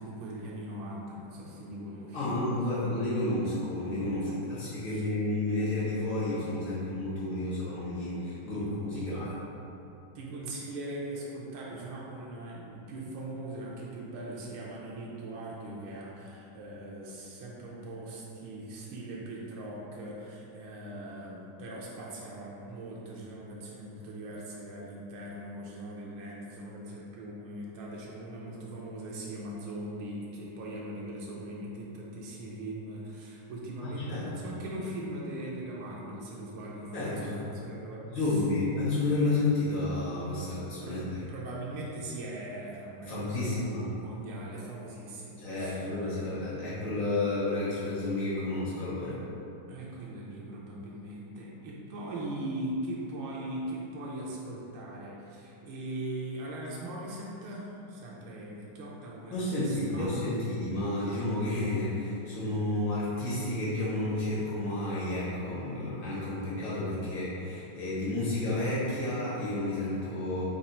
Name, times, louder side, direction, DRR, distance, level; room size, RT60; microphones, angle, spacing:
voice 1, 0.0-2.4 4.3-4.6 4.8-5.1 6.7-6.8 8.5-9.3 10.1-38.4 40.3-46.1 49.7-60.1, right 1 dB, 85° right, -4 dB, 1.5 m, -40 dB
voice 2, 2.1-9.3 34.1-34.3 36.9-37.4 38.1-41.0 43.0-43.9 45.4-49.2 59.3-70.4, left 2 dB, 65° left, -9 dB, 2.1 m, -31 dB
5.3 x 2.4 x 4.1 m, 2.8 s
omnidirectional pair, 2.3 m